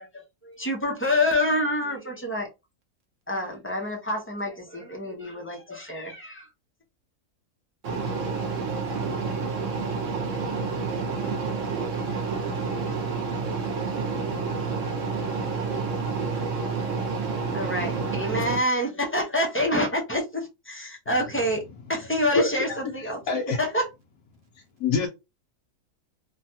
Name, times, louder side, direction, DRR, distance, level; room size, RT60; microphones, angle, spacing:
voice 1, 0.4-2.5 3.3-6.5 17.5-21.6 21.9-23.9, left 1 dB, 15° left, 0.4 m, -27 dB
voice 2, 7.8-18.6, right 4 dB, 60° right, 1.1 m, -29 dB
voice 3, 22.3-22.8 23.3-23.6 24.8-25.1, left 4 dB, 85° left, 1.2 m, -25 dB
3.2 x 2.2 x 2.7 m
omnidirectional pair, 1.6 m